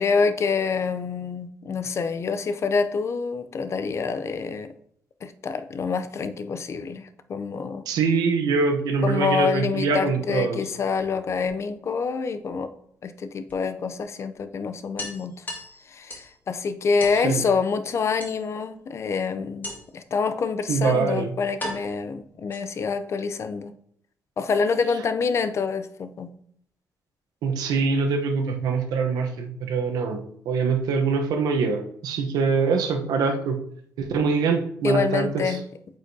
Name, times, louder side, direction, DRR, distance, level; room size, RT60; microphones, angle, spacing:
voice 1, 0.0-4.7 5.2-7.8 9.0-12.7 13.0-15.3 15.9-23.7 24.4-26.3 34.8-35.6, left 5 dB, 45° left, 11 dB, 0.5 m, -26 dB
voice 2, 7.9-10.6 17.1-17.4 20.7-21.3 27.4-33.6 34.0-35.6, right 5 dB, 85° right, 4 dB, 0.9 m, -24 dB
sound 1, 11.0-12.0 13.5-13.6 14.0-14.1 14.4-14.5 15.0-16.4 17.0-17.2 18.2-18.8 19.6-20.1 20.9-21.0 21.6-23.0, left 1 dB, 30° left, 1.7 m, -37 dB
8.2 x 4.8 x 2.7 m, 0.67 s
cardioid pair, 100°, 6 cm